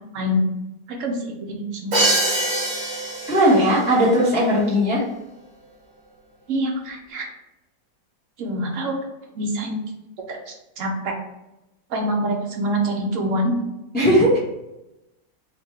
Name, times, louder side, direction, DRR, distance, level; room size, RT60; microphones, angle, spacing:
voice 1, 0.9-2.0 6.5-7.3 8.4-9.0 9.3-9.8 10.3-11.1 11.9-13.5, equal, 60° right, 1 dB, 0.8 m, -25 dB
Crash cymbal, 1.9-3.8, right 1 dB, 80° right, 1.9 m, -23 dB
voice 2, 3.3-5.0 13.9-14.4, equal, 10° left, -6 dB, 0.6 m, -17 dB
4.0 x 2.2 x 4.5 m, 0.94 s
omnidirectional pair, 2.0 m